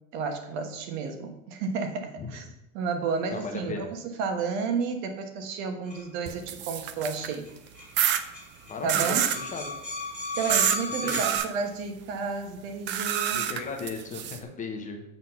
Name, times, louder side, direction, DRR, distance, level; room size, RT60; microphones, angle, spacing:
voice 1, 0.1-2.5 2.7-7.5 8.8-9.3 10.4-13.4, right 5 dB, 65° right, 6 dB, 1.3 m, -31 dB
voice 2, 3.3-3.9 8.7-9.6 11.0-11.4 13.3-15.0, left 4 dB, 20° left, 3 dB, 0.8 m, -36 dB
sound 1, 5.9-6.0 7.2-7.3 7.4-7.5 7.7-11.4, left 2 dB, 5° right, 2.6 m, -36 dB
sound 2, 6.3-7.3 8.0-8.2 8.9-9.4 10.5-10.8 11.1-11.5 12.9-14.4, right 10 dB, 30° right, 0.4 m, -27 dB
7.7 x 4.1 x 5.7 m, 0.89 s
supercardioid pair, 140°, 40 cm